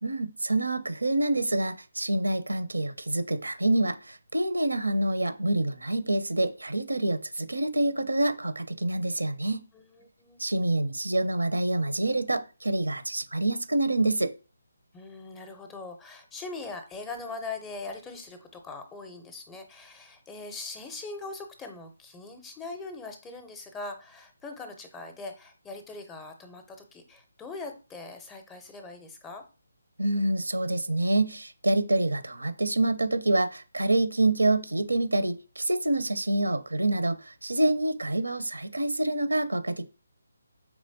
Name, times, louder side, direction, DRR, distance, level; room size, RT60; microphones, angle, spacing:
voice 1, 0.0-9.6 10.4-14.3 30.0-39.8, right 2 dB, 80° right, 0.6 m, -27 dB
voice 2, 9.7-10.4 14.9-29.4, left 3 dB, 10° left, 0.6 m, -41 dB
4.8 x 3.1 x 2.7 m
figure-of-eight pair, 150°, 0 cm